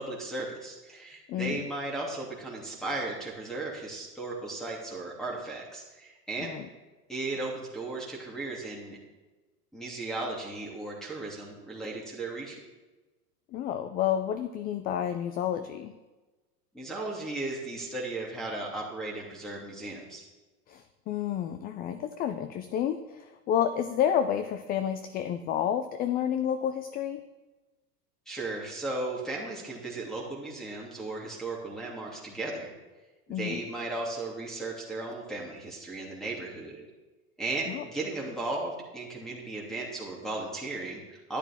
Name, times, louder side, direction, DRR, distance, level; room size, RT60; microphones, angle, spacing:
voice 1, 0.0-6.5 7.1-9.0 9.7-12.6 16.7-20.2 28.3-32.7 33.3-36.8 37.4-41.4, right 2 dB, ahead, -5 dB, 2.5 m, -36 dB
voice 2, 1.3-1.6 6.4-6.7 13.5-15.9 20.7-27.2 33.3-33.6 37.7-37.8, left 9 dB, 20° left, 10 dB, 0.3 m, -30 dB
12.0 x 10.0 x 3.6 m, 1.2 s
hypercardioid pair, 95°, 48 cm